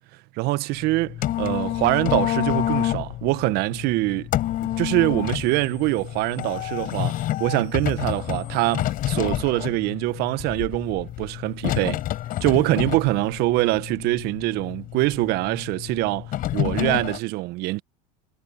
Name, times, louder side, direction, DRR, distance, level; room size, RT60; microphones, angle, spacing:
voice 1, 0.4-4.3 4.8-12.0 12.4-17.8, right 21 dB, 55° right, 1.3 m, -24 dB
sound 1, 0.7-17.2, left 13 dB, 45° left, 5.4 m, -29 dB
hypercardioid pair, 95°, 20 cm